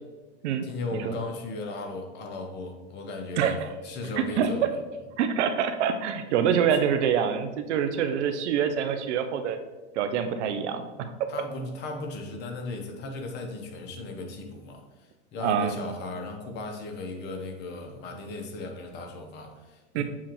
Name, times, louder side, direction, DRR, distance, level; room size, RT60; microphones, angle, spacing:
voice 1, 0.6-3.6 3.8-4.7 11.3-20.0, left 3 dB, 30° left, 3 dB, 0.7 m, -36 dB
voice 2, 3.4-3.7 4.2-4.7 5.2-9.6 10.0-11.3 15.4-15.8 19.9-20.0, right 8 dB, 80° right, 8 dB, 0.6 m, -26 dB
7.1 x 2.4 x 2.9 m, 1.2 s
supercardioid pair, 130°, 35 cm